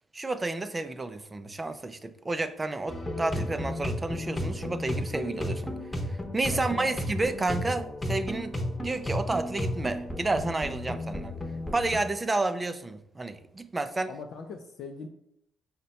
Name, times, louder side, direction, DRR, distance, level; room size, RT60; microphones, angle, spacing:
voice 1, 0.1-5.7 6.1-8.5 8.8-11.3 11.7-14.1, right 2 dB, 25° right, 10 dB, 0.4 m, -30 dB
sound 1, 2.9-12.0, left 1 dB, 15° left, 0.8 m, -33 dB
voice 2, 6.5-7.0 14.1-15.1, left 5 dB, 70° left, 3 dB, 0.4 m, -41 dB
5.4 x 2.2 x 4.0 m, 0.74 s
cardioid pair, 90°, 0 cm